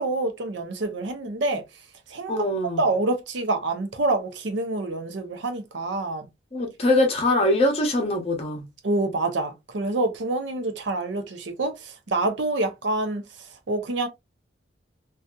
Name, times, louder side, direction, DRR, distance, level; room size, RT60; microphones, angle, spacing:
voice 1, 0.0-1.6 2.1-6.2 8.8-13.2 13.7-14.1, right 2 dB, 70° right, 0.6 m, -27 dB
voice 2, 2.3-2.8 6.5-8.7, left 1 dB, 30° left, 0.7 m, -23 dB
2.6 x 2.3 x 2.2 m
head